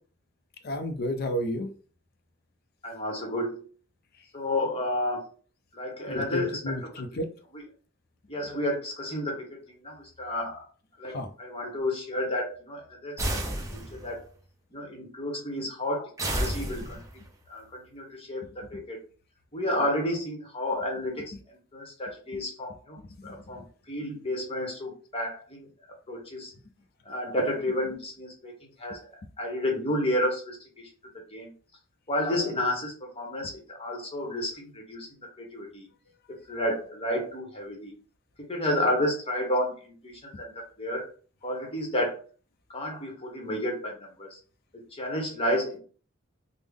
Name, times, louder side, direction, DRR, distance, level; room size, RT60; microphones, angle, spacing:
voice 1, 0.6-1.7 6.1-7.3 11.1-11.3 23.2-23.3, equal, 45° left, 8 dB, 0.5 m, -31 dB
voice 2, 2.8-3.7 4.3-5.3 5.7-6.9 7.5-7.6 8.3-10.6 11.0-13.1 13.7-14.2 14.7-17.0 17.5-19.0 19.5-23.0 23.2-25.7 26.1-26.5 27.0-28.5 28.8-29.1 29.4-30.9 31.1-31.5 32.1-35.9 36.3-37.9 38.5-41.1 41.4-42.2 42.7-44.4 44.7-45.8, left 1 dB, 30° left, 0 dB, 0.9 m, -31 dB
sound 1, 13.2-14.2 16.2-17.3, right 1 dB, 15° right, 0.6 m, -31 dB
3.5 x 2.0 x 3.4 m, 0.40 s
head